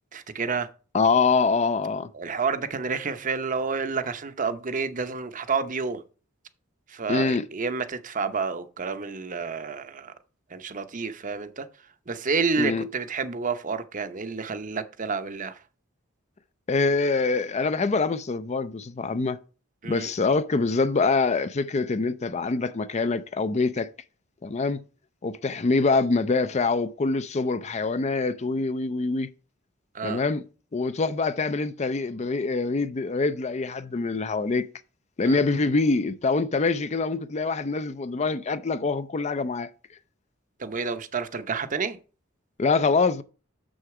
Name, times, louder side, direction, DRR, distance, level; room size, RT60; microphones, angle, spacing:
voice 1, 0.1-0.7 2.1-6.0 6.9-10.1 10.5-11.7 12.1-15.6 19.8-20.1 29.9-30.2 35.2-35.4 40.6-42.0, right 5 dB, 40° right, 0.8 m, -29 dB
voice 2, 0.9-2.1 7.1-7.5 12.6-12.9 16.7-19.4 19.8-23.9 24.4-24.8 25.2-29.3 30.0-30.4 30.7-34.7 35.2-39.7 42.6-43.2, left 4 dB, 35° left, 0.5 m, -25 dB
6.8 x 6.3 x 4.8 m
head